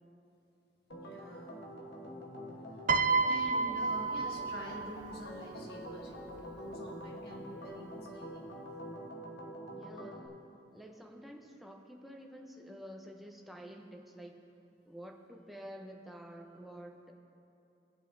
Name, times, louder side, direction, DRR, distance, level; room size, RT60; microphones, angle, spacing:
Organ, 0.9-10.3, equal, 90° left, 1.1 m, -46 dB
voice 1, 1.0-1.6 2.5-2.8 3.3-8.5, equal, 60° left, -3 dB, 1.8 m, -48 dB
Piano, 2.9-5.2 6.3-6.5, right 4 dB, 45° right, 0.4 m, -30 dB
voice 2, 9.7-10.4 10.7-14.5 14.8-17.1, equal, ahead, 1 dB, 0.7 m, -49 dB
18.5 x 7.2 x 2.6 m, 2.7 s
head